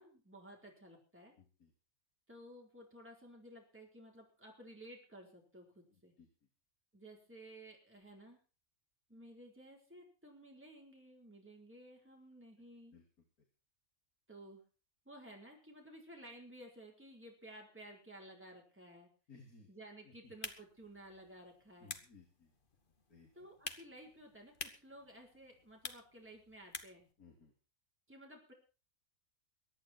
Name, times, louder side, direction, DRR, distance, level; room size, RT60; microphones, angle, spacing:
voice 1, 0.0-1.3 2.3-6.1 6.9-8.4 9.1-12.9 14.3-14.6 15.0-19.1 19.7-22.0 23.3-27.1 28.1-28.5, right 1 dB, 10° right, -1 dB, 4.4 m, -55 dB
voice 2, 1.4-1.7 6.2-6.3 12.9-13.0 19.3-19.7 20.0-20.3 21.8-22.5 23.1-23.5 27.2-27.5, left 4 dB, 75° left, 3 dB, 3.2 m, -60 dB
sound 1, 20.2-27.1, left 4 dB, 35° left, 1.5 m, -50 dB
23.0 x 9.8 x 4.5 m, 0.35 s
omnidirectional pair, 1.5 m